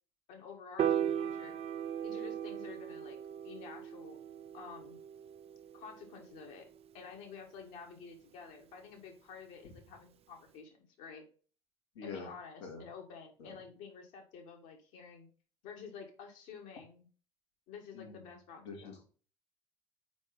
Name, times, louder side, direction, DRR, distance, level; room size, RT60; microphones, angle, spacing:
voice 1, 0.3-1.6 2.0-3.2 3.4-4.2 4.5-5.0 5.7-6.7 6.9-11.2 12.0-15.3 15.6-17.1 17.7-18.9, left 6 dB, 65° left, 3 dB, 1.7 m, -50 dB
Piano, 0.8-7.1, right 9 dB, 45° right, 0.6 m, -38 dB
voice 2, 11.9-12.3 12.6-12.8 13.4-13.6 17.9-19.0, left 4 dB, 85° left, 1 dB, 1.7 m, -47 dB
4.7 x 4.1 x 5.2 m, 0.39 s
hypercardioid pair, 65°, 14 cm